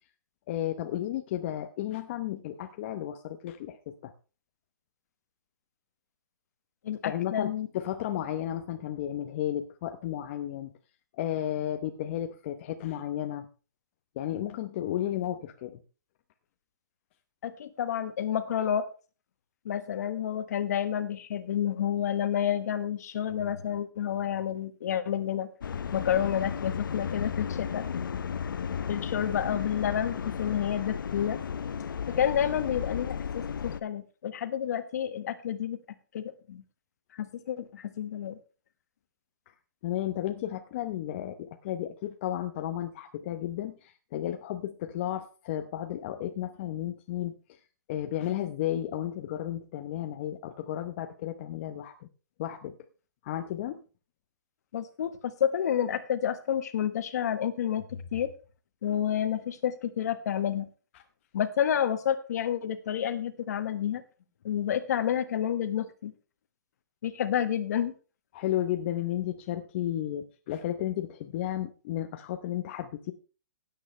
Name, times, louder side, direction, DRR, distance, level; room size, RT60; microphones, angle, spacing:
voice 1, 0.5-4.1 7.0-10.7 11.1-13.5 14.2-15.8 39.8-47.6 47.9-52.1 52.4-52.8 53.2-53.8 68.3-73.1, left 12 dB, 35° left, 6 dB, 0.9 m, -33 dB
voice 2, 6.8-7.7 17.4-18.9 19.6-25.5 25.9-27.9 28.9-31.4 32.1-35.8 36.1-36.6 37.1-38.4 54.7-58.3 58.8-60.7 61.3-64.0 64.4-66.1 67.0-67.9, left 9 dB, 55° left, 11 dB, 1.4 m, -29 dB
sound 1, 25.6-33.8, left 7 dB, 80° left, 0.8 m, -34 dB
16.0 x 9.0 x 3.3 m, 0.35 s
hypercardioid pair, 160°, 11 cm